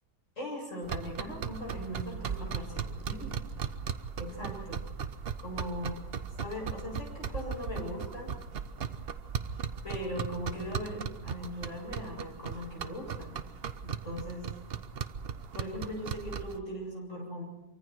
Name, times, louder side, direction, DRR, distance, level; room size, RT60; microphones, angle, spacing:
voice 1, 0.4-3.3 4.2-4.8 5.4-6.0 6.4-8.3 9.8-13.3 13.8-14.5 15.5-17.4, equal, 45° left, -1 dB, 8.1 m, -39 dB
sound 1, 0.8-16.6, right 7 dB, 45° right, 0.8 m, -38 dB
26.0 x 24.5 x 4.7 m, 1.0 s
omnidirectional pair, 1.8 m